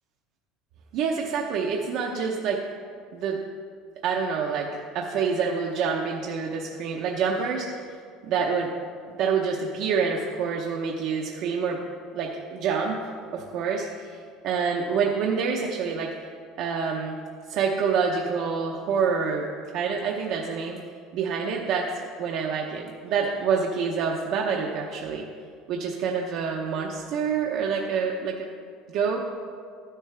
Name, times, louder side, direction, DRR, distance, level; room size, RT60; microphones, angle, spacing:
voice 1, 0.9-2.7 3.1-3.4 4.0-7.7 8.3-8.7 9.2-11.8 12.1-14.2 14.4-16.1 16.6-17.2 17.5-20.8 21.1-25.2 25.7-28.5 28.9-29.2, right 5 dB, 50° right, 0 dB, 0.8 m, -27 dB
12.5 x 9.9 x 3.4 m, 2.2 s
cardioid pair, 160°, 0 cm